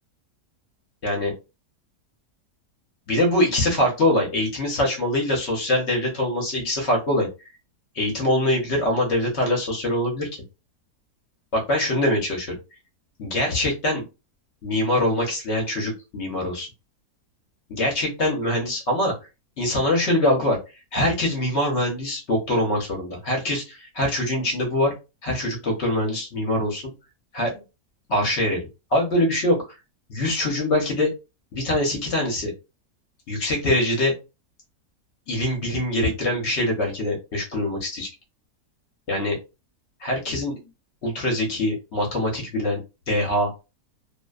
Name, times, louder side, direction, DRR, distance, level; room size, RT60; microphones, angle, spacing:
voice 1, 1.0-1.3 3.1-7.3 7.9-10.3 11.5-12.6 13.2-14.0 14.6-16.7 17.7-19.1 19.6-20.6 20.9-24.9 25.2-26.9 27.3-27.6 28.1-29.6 30.1-31.1 31.5-32.5 33.3-34.1 35.3-38.1 39.1-39.4 40.0-40.6 41.0-42.8 43.1-43.5, left 1 dB, 55° left, 0 dB, 0.9 m, -23 dB
2.6 x 2.1 x 2.3 m, 0.28 s
omnidirectional pair, 1.6 m